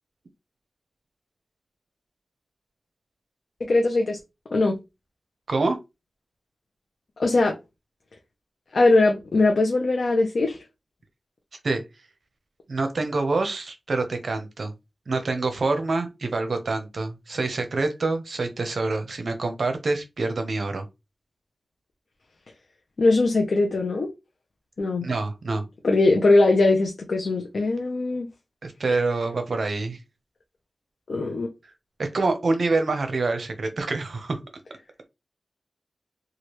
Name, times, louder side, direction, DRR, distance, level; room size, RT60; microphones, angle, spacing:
voice 1, 3.7-4.2 4.5-4.8 7.2-7.6 8.7-10.6 23.0-24.1 24.8-25.1 25.8-28.3 31.1-31.5, left 2 dB, 70° left, 0.5 m, -20 dB
voice 2, 5.5-5.8 11.6-11.8 12.7-14.7 15.1-20.8 25.0-25.6 28.6-30.0 32.0-34.4, right 3 dB, 65° right, 0.6 m, -26 dB
3.1 x 2.4 x 2.9 m
wide cardioid pair, 105°, 0 cm